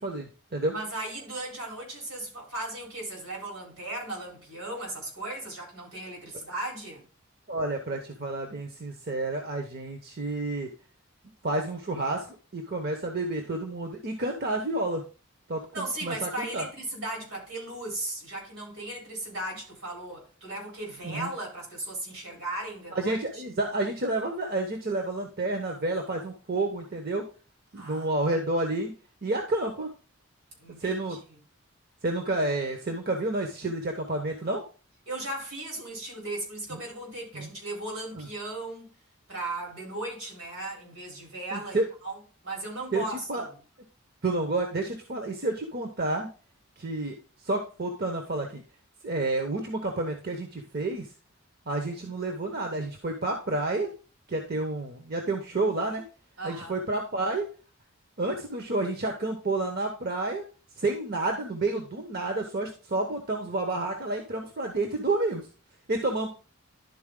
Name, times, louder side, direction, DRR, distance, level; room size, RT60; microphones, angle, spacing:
voice 1, 0.0-0.7 7.5-10.7 11.4-15.0 15.5-16.6 21.0-21.3 22.9-27.2 27.7-28.9 29.2-29.9 30.8-31.2 32.0-34.6 36.7-36.8 37.3-37.5 38.1-38.3 41.5-41.9 42.9-43.4 44.2-46.3 46.8-48.6 49.0-51.1 51.7-53.9 54.3-56.0 56.4-57.5 58.2-60.4 60.8-65.5 65.9-66.3, right 2 dB, 50° right, 0.9 m, -30 dB
voice 2, 0.7-7.0 15.7-23.4 27.8-28.1 30.6-31.0 35.1-38.9 39.3-42.2 42.4-43.5 56.4-56.8, right 2 dB, 85° right, 3.8 m, -36 dB
11.0 x 4.1 x 3.7 m
head